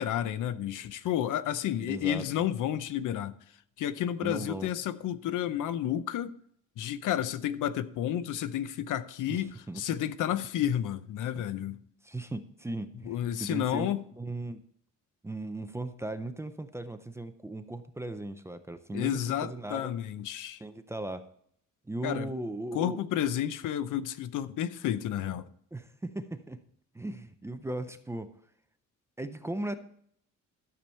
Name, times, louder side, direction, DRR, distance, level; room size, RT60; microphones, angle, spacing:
voice 1, 0.0-3.3 3.8-6.4 6.8-11.8 13.0-14.0 18.9-20.6 22.0-22.3 22.7-25.5, left 11 dB, 75° left, 0.7 m, -31 dB
voice 2, 1.8-2.5 4.2-4.7 9.3-9.8 12.0-14.6 15.2-19.9 20.6-21.3 21.9-23.0 25.7-26.6 26.9-28.3 29.2-29.8, right 2 dB, 10° right, 0.5 m, -37 dB
12.5 x 7.0 x 4.3 m
cardioid pair, 165°, 31 cm